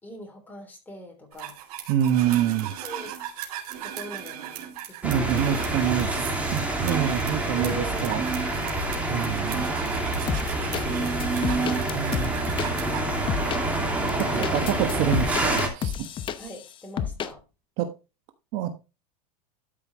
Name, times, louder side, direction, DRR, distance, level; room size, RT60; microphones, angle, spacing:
voice 1, 0.0-1.6 2.8-3.2 3.8-5.5 7.4-8.2 16.4-17.4, left 1 dB, 10° left, 3.3 m, -43 dB
sound 1, 1.4-13.0, right 7 dB, 70° right, 3.2 m, -34 dB
voice 2, 1.9-2.7 5.0-8.2 9.1-9.7 11.9-12.3 14.3-15.9 17.8-17.9 18.5-18.7, right 10 dB, 50° right, 1.3 m, -26 dB
sound 2, 5.0-15.7, right 2 dB, 5° right, 2.4 m, -27 dB
sound 3, 10.3-10.8 11.2-12.7 13.3-13.6 14.1-16.6 17.0-17.3, left 8 dB, 25° left, 0.8 m, -30 dB
12.5 x 5.6 x 3.1 m
supercardioid pair, 140°, 20 cm